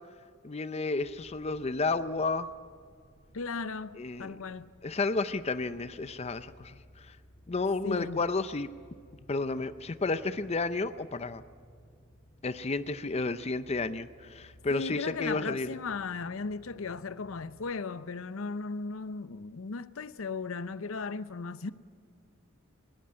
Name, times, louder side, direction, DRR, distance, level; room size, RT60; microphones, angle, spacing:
voice 1, 0.4-2.5 4.0-4.4 4.8-7.2 7.5-8.7 9.3-11.4 12.4-15.7, left 3 dB, 30° left, 0.5 m, -32 dB
sound 1, 1.0-17.7, equal, 50° left, 5.5 m, -59 dB
voice 2, 3.3-4.7 7.8-8.2 14.7-21.7, left 4 dB, 75° left, 0.7 m, -36 dB
20.5 x 18.0 x 8.7 m
head